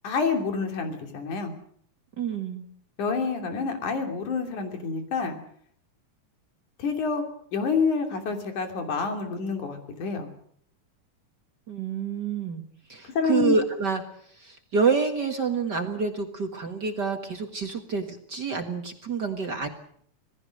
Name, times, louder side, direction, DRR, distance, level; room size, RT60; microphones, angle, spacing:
voice 1, 0.0-1.5 3.0-5.4 6.8-7.2 7.5-10.3 13.1-13.6, left 5 dB, 80° left, 5 dB, 4.5 m, -27 dB
voice 2, 2.2-2.7 11.7-12.6 12.9-14.0 14.3-19.7, right 5 dB, 40° right, 5 dB, 1.9 m, -28 dB
26.5 x 18.5 x 6.6 m, 0.63 s
omnidirectional pair, 3.4 m